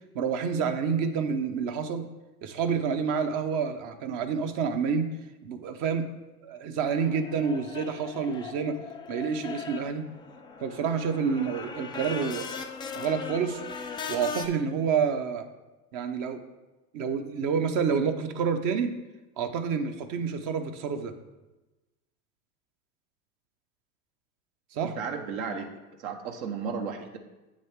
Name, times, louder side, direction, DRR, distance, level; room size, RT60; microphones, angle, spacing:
voice 1, 0.1-2.0 2.4-5.1 5.4-6.0 6.4-8.7 9.1-10.1 10.6-12.6 12.9-13.6 14.1-15.5 15.9-16.4 16.9-18.9 19.4-21.1 24.7-24.9, right 6 dB, 45° right, 7 dB, 0.9 m, -28 dB
sound 1, 6.9-14.5, left 5 dB, 10° left, 0.3 m, -39 dB
voice 2, 25.0-25.7 26.0-27.2, right 5 dB, 65° right, 5 dB, 1.2 m, -34 dB
7.8 x 6.3 x 3.6 m, 1.1 s
hypercardioid pair, 100°, 45 cm